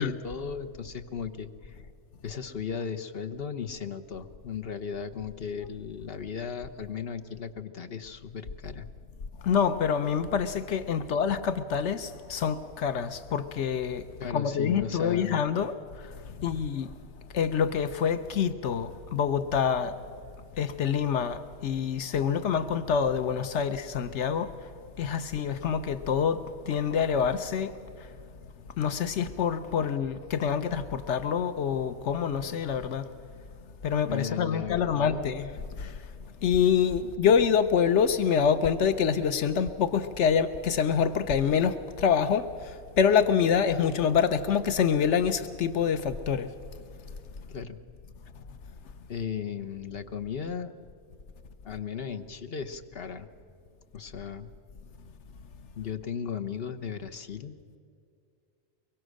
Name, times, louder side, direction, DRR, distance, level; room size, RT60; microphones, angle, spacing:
voice 1, 0.0-1.8 2.2-8.9 11.0-11.1 14.2-15.4 34.1-35.4 37.0-37.1 47.5-47.8 49.1-50.7 51.6-53.3 53.9-54.5 55.8-57.5, left 7 dB, 60° left, 9 dB, 1.2 m, -36 dB
voice 2, 9.4-14.0 14.3-15.7 16.4-16.9 17.3-19.9 20.6-24.5 25.0-27.7 28.8-33.1 33.8-35.5 35.8-35.9 36.4-42.5 43.0-46.5, left 7 dB, 85° left, 11 dB, 1.1 m, -26 dB
23.5 x 22.5 x 6.4 m, 2.4 s
omnidirectional pair, 1.2 m